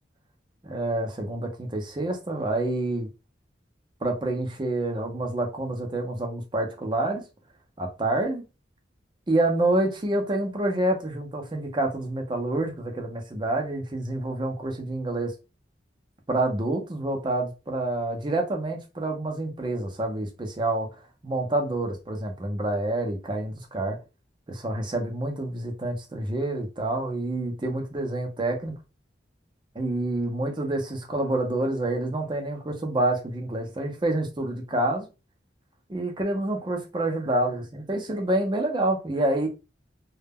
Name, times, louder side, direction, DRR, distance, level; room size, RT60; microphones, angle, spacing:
voice 1, 0.6-3.1 4.0-7.2 7.8-8.4 9.3-15.3 16.3-20.9 21.2-24.0 24.5-28.8 29.7-35.1 35.9-39.5, right 2 dB, 25° right, 0.5 m, -27 dB
2.1 x 2.0 x 3.4 m
head